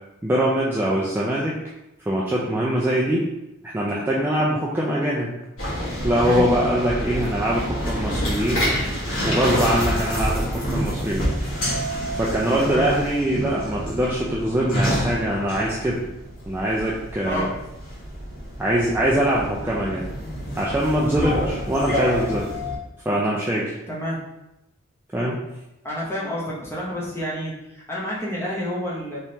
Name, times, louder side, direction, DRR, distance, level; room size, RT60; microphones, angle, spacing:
voice 1, 0.2-1.6 2.1-3.2 3.7-5.3 6.0-8.7 9.2-11.3 12.2-16.0 16.5-17.5 18.6-20.0 20.6-22.5 23.1-23.7 25.1-25.4, right 1 dB, 10° right, -6 dB, 0.3 m, -23 dB
sound 1, 5.6-22.8, equal, 75° left, 1.3 m, -28 dB
voice 2, 23.9-24.2 25.8-29.2, equal, 10° left, -5 dB, 0.7 m, -29 dB
3.5 x 3.0 x 2.8 m, 0.91 s
head